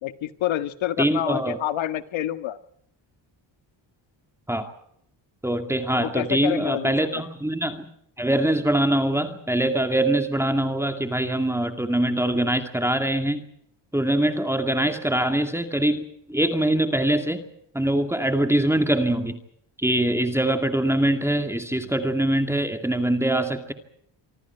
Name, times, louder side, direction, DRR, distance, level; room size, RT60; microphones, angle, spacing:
voice 1, 0.0-2.6 5.9-7.2, left 12 dB, 80° left, 10 dB, 1.7 m, -28 dB
voice 2, 1.0-1.6 4.5-4.7 5.4-7.9 8.2-13.4 13.9-16.0 16.3-17.4 17.7-19.4 19.8-23.7, right 1 dB, 5° right, 6 dB, 2.2 m, -23 dB
26.0 x 24.5 x 4.6 m, 0.70 s
cardioid pair, 135°, 46 cm